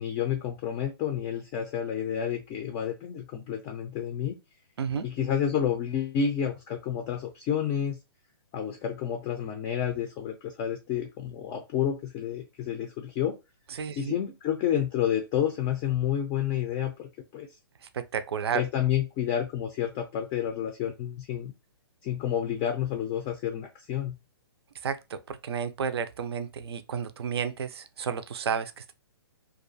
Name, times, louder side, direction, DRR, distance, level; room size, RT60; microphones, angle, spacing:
voice 1, 0.0-4.3 5.0-8.0 8.5-13.4 14.0-17.5 18.5-21.5 22.0-24.1, left 9 dB, 25° left, 0.3 m, -30 dB
voice 2, 13.7-14.1 17.9-18.6 24.8-28.9, right 7 dB, 75° right, 0.4 m, -32 dB
2.4 x 2.3 x 2.6 m
hypercardioid pair, 135°, 13 cm